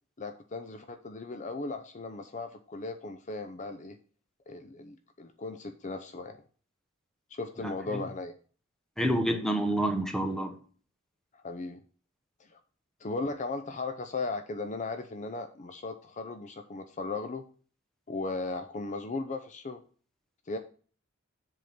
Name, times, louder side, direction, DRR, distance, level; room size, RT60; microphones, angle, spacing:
voice 1, 0.2-4.0 4.5-6.4 7.3-8.3 11.3-11.8 12.4-12.6 13.0-17.4 18.1-19.8 20.5-20.6, left 3 dB, 35° left, 7 dB, 0.6 m, -37 dB
voice 2, 9.0-10.5, right 1 dB, 5° left, 5 dB, 1.0 m, -28 dB
7.6 x 3.8 x 6.6 m, 0.42 s
head